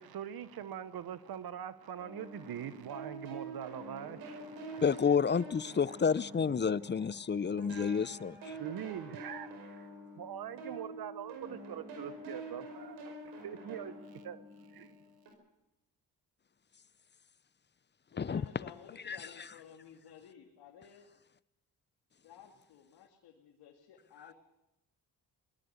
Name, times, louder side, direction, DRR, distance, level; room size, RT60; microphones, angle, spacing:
voice 1, 0.0-4.8 6.2-7.9 8.6-9.9 10.1-15.0, right 10 dB, 65° right, 1.2 m, -44 dB
sound 1, 2.0-7.2 7.6-15.3, right 1 dB, 85° right, 5.3 m, -47 dB
voice 2, 4.8-8.6 18.2-18.4 19.1-19.5, left 6 dB, 25° left, 0.7 m, -30 dB
voice 3, 18.1-21.1 22.2-24.3, left 8 dB, 80° left, 2.3 m, -54 dB
24.0 x 18.0 x 6.8 m
supercardioid pair, 60°, 40 cm